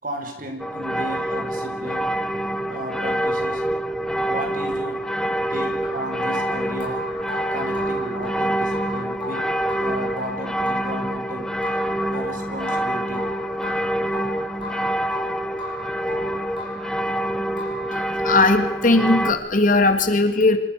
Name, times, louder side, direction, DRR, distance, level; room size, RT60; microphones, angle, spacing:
voice 1, 0.0-2.0 2.7-3.6 4.3-4.9 5.5-7.0 7.5-9.4 9.8-11.4 12.1-13.2, equal, 45° right, 4 dB, 6.1 m, -34 dB
sound 1, 0.6-19.3, right 1 dB, 5° left, 1.4 m, -26 dB
sound 2, 5.8-18.4, left 1 dB, 30° left, 6.2 m, -37 dB
voice 2, 17.9-20.6, left 2 dB, 45° left, 7 dB, 2.7 m, -18 dB
27.0 x 26.0 x 7.0 m, 0.90 s
head